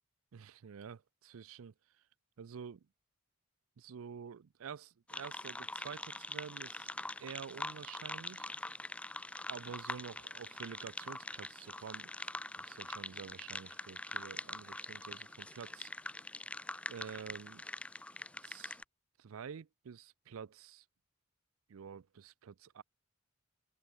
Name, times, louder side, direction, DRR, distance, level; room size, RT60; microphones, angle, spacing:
voice 1, 0.3-1.7 2.4-2.9 3.8-8.5 9.5-12.1 12.6-15.9 16.9-17.6 18.4-18.8 19.2-20.9 21.7-22.8, right 7 dB, 80° right, 0.4 m, -49 dB
sound 1, 5.1-18.8, left 2 dB, 5° left, 0.4 m, -44 dB
head